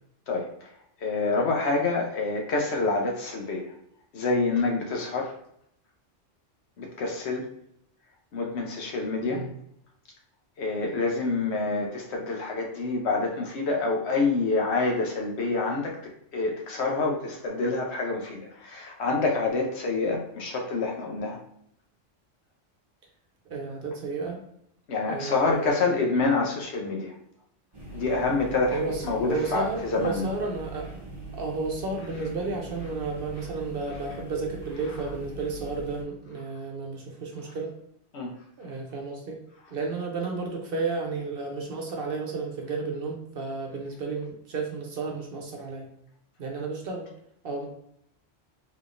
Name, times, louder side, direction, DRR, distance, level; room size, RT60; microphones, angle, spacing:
voice 1, 1.0-3.7 4.1-5.3 6.8-7.5 8.3-9.4 10.6-21.4 24.9-27.1 27.9-30.2 38.1-38.3, left 3 dB, 65° left, 1 dB, 1.0 m, -27 dB
voice 2, 23.5-24.4 25.1-25.9 28.7-31.0 31.3-37.7 38.6-39.4 39.7-45.9 46.4-47.1 47.4-47.7, right 3 dB, 55° right, 1 dB, 0.8 m, -32 dB
sound 1, 27.7-36.0, right 3 dB, 25° right, 0.7 m, -42 dB
3.6 x 3.2 x 2.5 m, 0.74 s
omnidirectional pair, 1.2 m